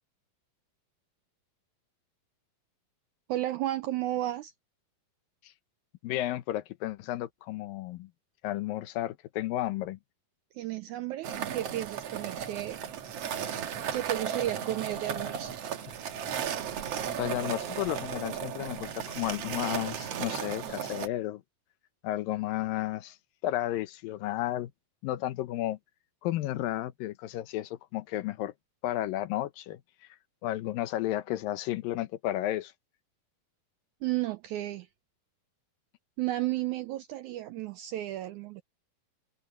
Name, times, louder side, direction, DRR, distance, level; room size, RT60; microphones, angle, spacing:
voice 1, 3.3-4.5 10.5-12.8 13.9-15.6 34.0-34.9 36.2-38.6, right 14 dB, 90° right, 1.7 m, -33 dB
voice 2, 6.0-8.1 8.4-10.0 17.2-21.4 22.0-23.2 23.4-24.7 25.0-25.8 26.2-28.5 28.8-29.8 30.4-32.7, left 14 dB, 75° left, 2.5 m, -32 dB
sound 1, 11.2-21.1, right 8 dB, 60° right, 1.9 m, -35 dB
omnidirectional pair, 4.2 m